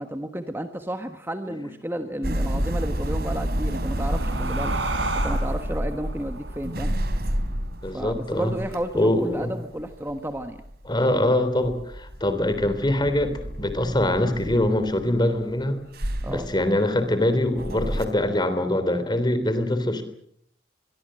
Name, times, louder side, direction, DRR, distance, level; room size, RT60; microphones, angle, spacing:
voice 1, 0.0-4.7 5.1-6.9 7.9-10.6 16.2-16.5, right 1 dB, 10° right, 7 dB, 1.4 m, -32 dB
sound 1, 2.2-11.4 11.6-15.4 15.9-18.0, equal, 55° right, 3.5 m, -29 dB
sound 2, 3.5-8.6, right 3 dB, 80° right, 5.3 m, -34 dB
voice 2, 7.8-8.5 8.9-9.5 10.9-15.8 16.2-20.0, left 1 dB, 25° left, 10 dB, 3.4 m, -23 dB
25.0 x 23.0 x 7.7 m, 0.69 s
head